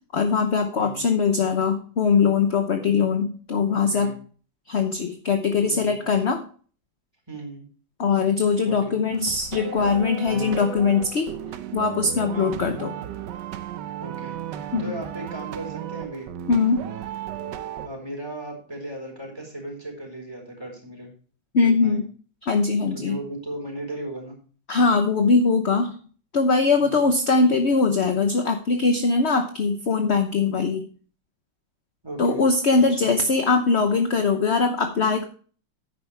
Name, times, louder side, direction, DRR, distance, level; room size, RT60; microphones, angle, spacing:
voice 1, 0.1-4.1 4.7-6.4 8.0-11.3 11.7-12.9 14.7-14.9 16.5-16.8 21.5-22.0 22.4-23.2 24.7-25.9 26.3-30.9 32.2-35.2, left 4 dB, 45° left, 6 dB, 1.0 m, -21 dB
voice 2, 0.8-1.1 2.8-3.1 3.7-4.2 5.6-6.2 7.3-7.7 8.6-9.0 12.3-12.6 14.0-16.3 17.8-21.1 21.6-22.0 22.9-24.4 26.7-27.1 32.0-32.4 32.9-33.2, right 1 dB, 15° right, 0 dB, 4.2 m, -37 dB
sound 1, 9.1-17.9, right 11 dB, 70° right, 1.4 m, -35 dB
11.0 x 9.4 x 3.3 m, 0.41 s
omnidirectional pair, 2.0 m